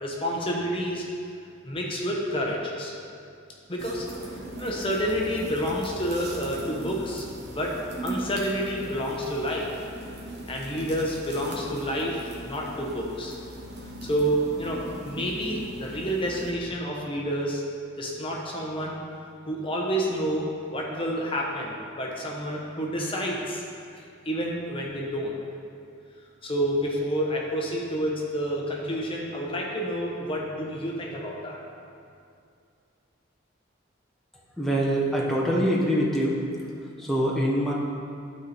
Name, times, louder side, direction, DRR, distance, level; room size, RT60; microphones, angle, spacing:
voice 1, 0.0-1.0 1.6-2.9 3.7-4.1 4.6-7.2 7.5-7.8 8.0-9.7 10.5-13.4 14.0-17.6 18.0-19.0 19.5-23.6 23.9-25.3 26.4-31.6, equal, 25° left, -2 dB, 1.0 m, -29 dB
sound 1, 3.8-16.5, right 1 dB, 55° right, 1.3 m, -39 dB
voice 2, 34.6-36.4 37.0-37.7, equal, ahead, -6 dB, 1.2 m, -24 dB
12.0 x 4.3 x 4.2 m, 2.4 s
head